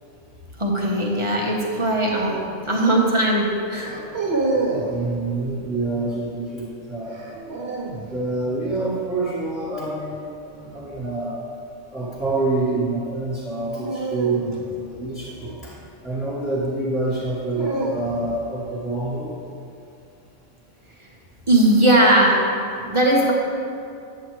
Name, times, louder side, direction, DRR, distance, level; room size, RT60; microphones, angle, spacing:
voice 1, 0.6-3.9 21.5-22.4 22.9-23.3, right 1 dB, 25° right, -3 dB, 0.9 m, -19 dB
sound 1, 1.9-2.2 3.7-5.0 7.1-8.1 10.5-10.9 13.7-16.1 17.1-18.4, right 2 dB, 55° right, 1.2 m, -28 dB
voice 2, 4.9-7.5 8.1-10.4 10.7-11.4 11.9-15.7 16.0-19.3, right 2 dB, ahead, -10 dB, 1.2 m, -27 dB
9.1 x 8.0 x 3.1 m, 2.7 s
omnidirectional pair, 1.3 m